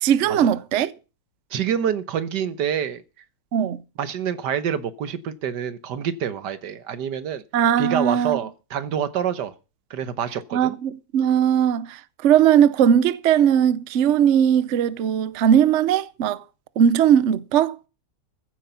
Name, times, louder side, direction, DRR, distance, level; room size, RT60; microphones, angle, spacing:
voice 1, 0.0-0.9 3.5-3.8 7.5-8.4 10.5-16.4 16.8-17.7, right 9 dB, 55° right, 0.9 m, -19 dB
voice 2, 1.5-3.0 4.0-7.4 7.8-9.5 9.9-10.8, right 8 dB, 85° right, 1.7 m, -27 dB
15.0 x 8.2 x 5.6 m
omnidirectional pair, 1.8 m